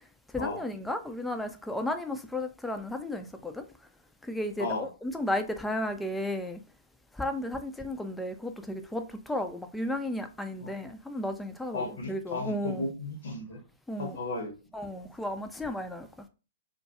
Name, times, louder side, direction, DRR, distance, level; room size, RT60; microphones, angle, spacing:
voice 1, 0.3-3.6 4.2-6.6 7.1-12.9 13.9-14.2 14.7-16.1, left 1 dB, 5° left, 0.3 m, -34 dB
voice 2, 4.6-4.9 10.6-10.7 11.7-13.6 14.0-14.5, left 2 dB, 55° left, 0.7 m, -34 dB
2.2 x 2.1 x 2.8 m
figure-of-eight pair, 110°, 0 cm